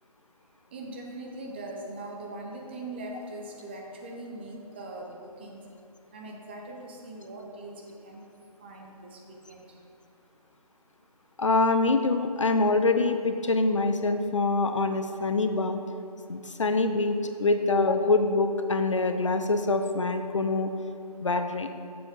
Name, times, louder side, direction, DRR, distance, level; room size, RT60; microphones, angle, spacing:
voice 1, 0.7-5.7 6.1-8.3 8.6-9.8 16.4-16.5, right 2 dB, 15° right, 0 dB, 0.7 m, -41 dB
voice 2, 11.4-15.8 16.3-20.7 21.2-21.7, left 3 dB, 50° left, 7 dB, 0.6 m, -25 dB
6.9 x 6.7 x 5.4 m, 2.7 s
figure-of-eight pair, 150°, 20 cm